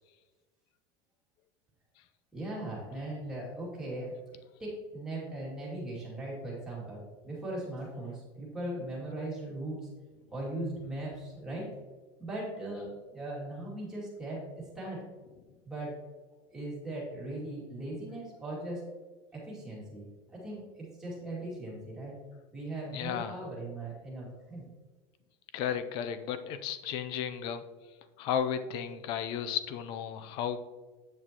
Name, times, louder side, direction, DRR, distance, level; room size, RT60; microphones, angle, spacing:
voice 1, 2.3-4.1 4.6-9.9 10.3-11.7 12.2-15.0 15.6-15.9 16.5-18.8 19.3-22.2 22.5-24.7, right 1 dB, 5° right, -7 dB, 2.3 m, -39 dB
voice 2, 22.9-23.4 25.5-27.6 28.2-30.6, left 8 dB, 45° left, 11 dB, 0.5 m, -34 dB
8.2 x 7.1 x 2.9 m, 1.3 s
cardioid pair, 175°, 12 cm